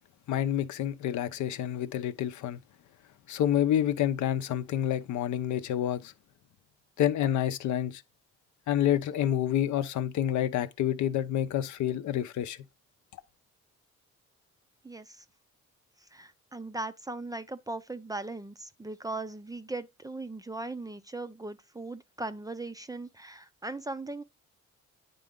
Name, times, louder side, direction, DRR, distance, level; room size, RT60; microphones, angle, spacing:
voice 1, 0.3-2.6 3.3-6.1 7.0-8.0 8.7-12.6, left 11 dB, 70° left, 0.7 m, -28 dB
voice 2, 14.8-15.2 16.1-24.2, right 2 dB, 10° right, 0.4 m, -38 dB
9.0 x 3.8 x 3.6 m
cardioid pair, 90°, 30 cm